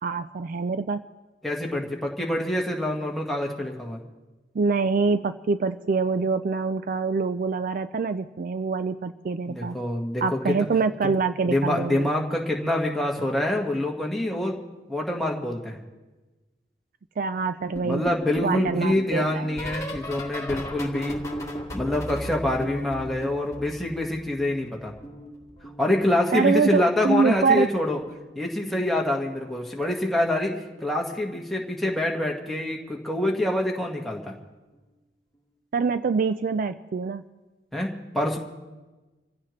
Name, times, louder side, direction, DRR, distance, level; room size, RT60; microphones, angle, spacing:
voice 1, 0.0-1.0 4.5-9.8 10.2-12.1 17.2-18.0 18.4-19.5 26.3-27.7 35.7-37.2, right 4 dB, 50° right, 11 dB, 0.4 m, -25 dB
voice 2, 1.4-4.0 9.5-10.5 11.0-11.1 11.5-14.6 14.9-15.8 17.8-21.2 21.7-24.9 25.8-28.0 28.3-30.5 30.8-34.3 37.7-38.4, left 1 dB, ahead, -1 dB, 1.6 m, -26 dB
sound 1, 17.7-24.5 24.8-26.4 27.4-27.7 28.0-28.3 29.9-30.1 30.5-30.7 32.3-32.4, equal, 20° left, 2.1 m, -37 dB
26.0 x 15.5 x 3.2 m, 1.2 s
head